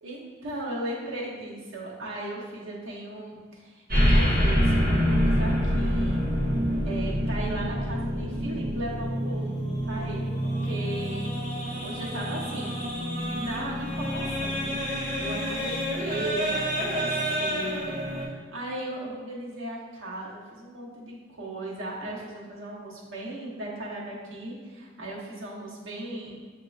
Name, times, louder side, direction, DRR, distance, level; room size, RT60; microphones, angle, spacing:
voice 1, 0.0-6.2 6.8-12.8 13.3-14.8 15.2-26.4, right 1 dB, 75° right, -5 dB, 1.0 m, -37 dB
sound 1, 3.9-18.2, equal, 40° right, 1.1 m, -27 dB
7.3 x 2.8 x 2.4 m, 1.5 s
head